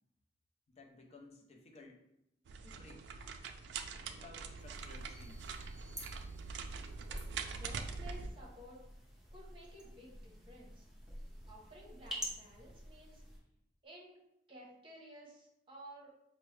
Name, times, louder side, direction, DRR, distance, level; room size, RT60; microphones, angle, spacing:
voice 1, 0.7-2.0 2.6-3.1 4.0-5.5, left 2 dB, 40° left, 1 dB, 0.5 m, -57 dB
sound 1, 2.5-8.3, right 5 dB, 75° right, 0.3 m, -44 dB
sound 2, 4.6-13.4, equal, 5° right, 0.8 m, -49 dB
sound 3, 5.1-7.0, left 1 dB, 20° left, 1.3 m, -64 dB
voice 2, 7.5-8.8 9.3-10.8 11.5-13.2 13.8-16.1, right 1 dB, 30° right, -4 dB, 0.9 m, -54 dB
4.5 x 2.1 x 3.1 m, 0.81 s
head